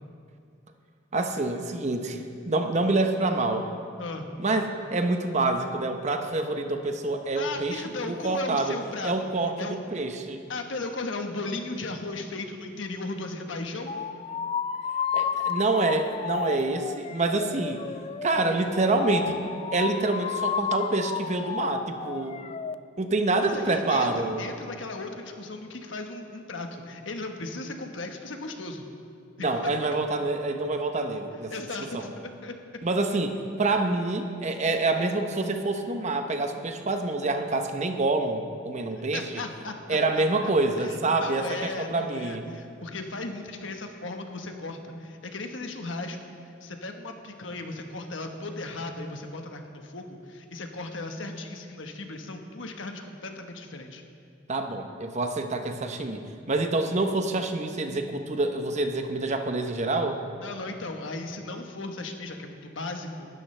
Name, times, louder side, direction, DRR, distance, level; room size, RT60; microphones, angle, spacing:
voice 1, 1.1-3.7 4.4-8.8 9.0-10.4 15.1-17.8 18.2-19.4 19.7-22.4 23.0-24.4 29.4-31.5 31.8-32.1 32.8-39.4 39.9-42.5 54.5-60.2, right 2 dB, 40° right, 6 dB, 0.8 m, -27 dB
voice 2, 4.0-4.3 7.4-9.1 9.6-9.8 10.5-14.0 23.4-28.8 29.4-29.7 31.5-32.5 39.1-40.5 40.8-46.2 46.6-54.0 60.4-63.3, left 2 dB, 75° left, 4 dB, 1.3 m, -36 dB
sound 1, 13.9-22.7, left 7 dB, 30° left, 0.3 m, -32 dB
19.5 x 12.0 x 3.3 m, 2.4 s
head